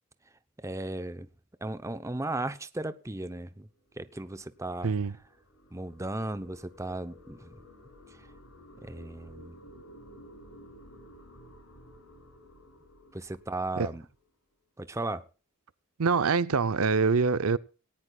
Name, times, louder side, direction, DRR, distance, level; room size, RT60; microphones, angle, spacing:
voice 1, 0.6-1.3 1.6-3.7 4.0-4.9 5.7-7.6 8.8-9.5 13.1-14.0 14.8-15.2, right 2 dB, 15° right, 0.8 m, -36 dB
sound 1, 3.6-14.2, left 1 dB, 75° left, 7.8 m, -53 dB
voice 2, 4.8-5.1 13.8-13.9 16.0-17.6, right 4 dB, 75° right, 0.7 m, -25 dB
18.5 x 18.0 x 2.4 m
head